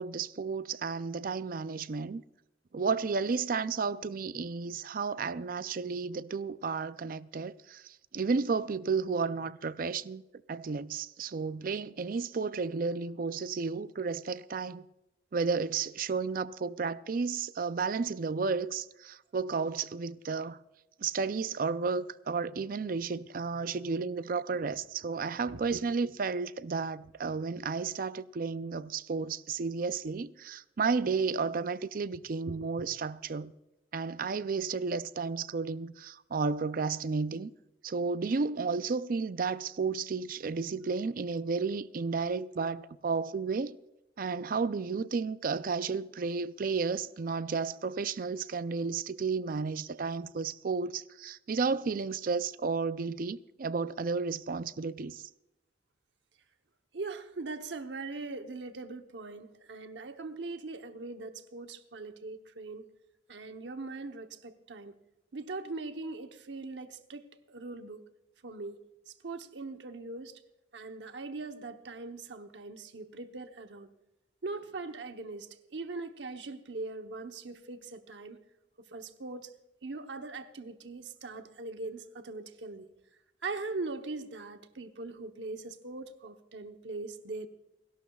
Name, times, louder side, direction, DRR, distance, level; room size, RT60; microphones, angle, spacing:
voice 1, 0.0-2.2 2.7-7.8 8.1-10.2 10.5-14.8 15.3-20.6 21.0-33.5 33.9-37.5 37.8-43.8 44.2-55.2, right 4 dB, 50° right, 0.4 m, -32 dB
voice 2, 25.5-26.1 32.5-32.6 56.9-62.9 63.3-64.9 65.3-68.0 68.4-68.8 69.2-70.4 70.7-73.9 74.4-78.4 78.9-79.5 79.8-82.9 83.4-87.5, right 3 dB, 90° right, 0.9 m, -41 dB
29.5 x 12.0 x 2.3 m
head